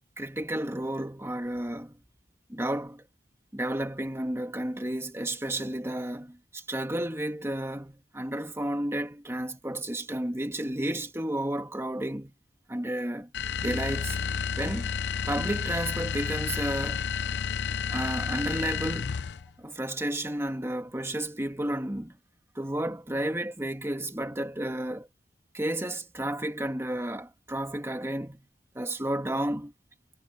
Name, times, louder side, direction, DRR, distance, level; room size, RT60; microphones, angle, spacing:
voice 1, 0.2-2.0 2.5-3.0 3.5-12.3 12.7-13.3 13.6-14.2 14.6-14.9 15.3-17.1 17.9-19.1 19.6-22.2 22.6-25.1 25.5-28.4 28.8-29.7, right 1 dB, 15° right, 1.7 m, -32 dB
sound 1, 13.3-19.5, left 6 dB, 65° left, 0.5 m, -31 dB
head